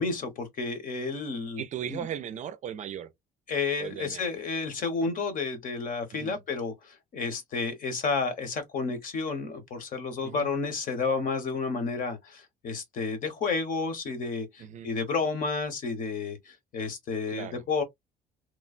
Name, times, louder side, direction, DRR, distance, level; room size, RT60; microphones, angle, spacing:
voice 1, 0.0-1.6 1.9-2.1 3.5-17.8, left 4 dB, 55° left, 1.1 m, -31 dB
voice 2, 1.6-3.1 3.8-4.4 6.1-6.4 10.2-10.5 14.6-14.9 17.3-17.6, right 9 dB, 45° right, 0.4 m, -37 dB
3.1 x 2.1 x 2.4 m
cardioid pair, 110°, 17 cm